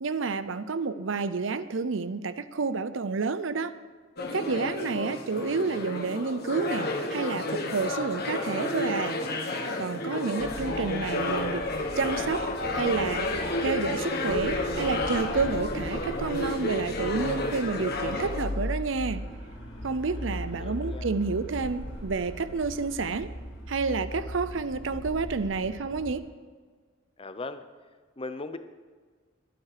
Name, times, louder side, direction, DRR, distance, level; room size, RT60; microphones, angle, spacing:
voice 1, 0.0-3.7 4.3-9.2 9.8-11.6 12.0-12.5 12.7-13.3 13.6-19.2 19.8-23.3 23.7-26.2, right 4 dB, 80° right, 13 dB, 0.6 m, -29 dB
sound 1, 4.2-18.5, left 2 dB, 55° left, 1.6 m, -31 dB
voice 2, 9.9-10.6 20.1-20.3 20.6-21.1 27.2-27.6 28.2-28.6, left 3 dB, 30° left, 10 dB, 0.8 m, -40 dB
sound 2, 10.4-26.1, left 1 dB, 85° left, 5.0 m, -39 dB
22.0 x 8.7 x 5.0 m, 1.5 s
head